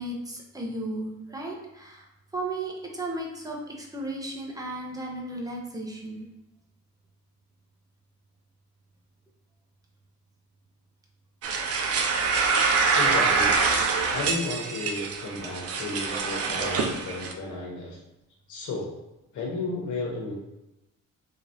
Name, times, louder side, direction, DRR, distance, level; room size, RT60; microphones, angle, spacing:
voice 1, 0.0-6.3, right 1 dB, 10° right, -1 dB, 0.9 m, -35 dB
sound 1, 11.4-17.3, right 4 dB, 50° right, 0.6 m, -25 dB
voice 2, 12.9-13.6 14.1-18.0 18.5-18.9 19.3-20.4, left 3 dB, 75° left, -1 dB, 1.2 m, -33 dB
3.5 x 3.0 x 2.8 m, 0.95 s
cardioid pair, 90°, 30 cm